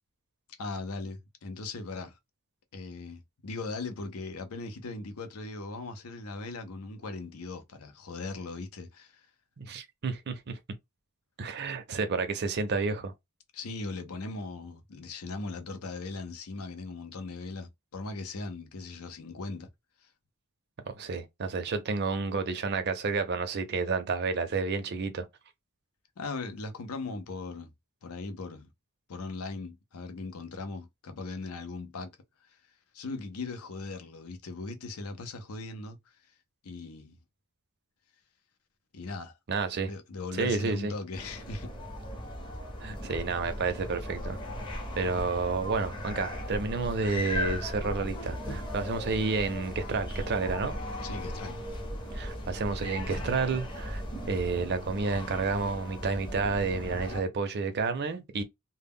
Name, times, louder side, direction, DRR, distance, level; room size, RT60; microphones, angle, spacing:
voice 1, 0.6-2.2 2.7-9.3 13.5-19.7 20.0-20.1 26.2-27.7 28.0-28.7 29.1-32.6 32.9-36.2 36.6-37.2 38.9-39.4 39.9-41.7 51.0-51.6, left 3 dB, 75° left, 0.5 m, -39 dB
voice 2, 9.6-10.6 11.4-13.1 20.9-25.3 39.5-39.9 40.3-40.9 42.8-44.4 45.0-50.8 52.1-54.0 54.3-58.4, right 4 dB, 50° right, 0.5 m, -30 dB
sound 1, 41.1-57.2, left 1 dB, 20° left, 0.6 m, -37 dB
2.1 x 2.1 x 3.5 m
head